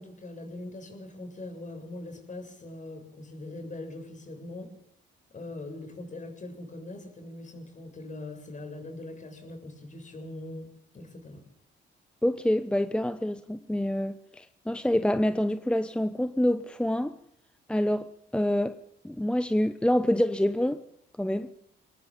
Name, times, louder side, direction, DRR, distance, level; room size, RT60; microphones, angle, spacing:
voice 1, 0.0-4.7 5.3-10.7 10.9-11.4, left 2 dB, 40° left, 7.1 m, -41 dB
voice 2, 12.2-17.2 17.7-18.1 18.3-18.8 19.0-20.8 21.2-21.5, left 1 dB, 5° left, 1.0 m, -26 dB
23.5 x 19.5 x 8.9 m
cardioid pair, 90°, 20 cm